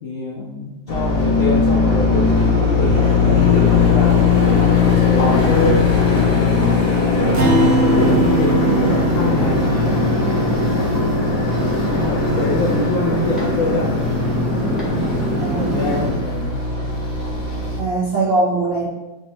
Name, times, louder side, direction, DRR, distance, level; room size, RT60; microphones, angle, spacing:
voice 1, 0.0-4.3 4.7-7.4 7.9-9.7 10.1-11.2 11.9-14.0 14.5-16.6, left 2 dB, 80° left, -1 dB, 0.7 m, -25 dB
sound 1, 0.9-17.8, left 4 dB, 45° left, 0.8 m, -19 dB
Acoustic guitar, 7.3-12.0, right 1 dB, 60° right, 1.3 m, -22 dB
sound 2, 7.8-16.1, equal, ahead, 0.5 m, -24 dB
voice 2, 15.4-15.9 17.8-18.9, right 2 dB, 45° right, -7 dB, 0.8 m, -21 dB
5.0 x 2.5 x 4.2 m, 1.1 s
omnidirectional pair, 2.1 m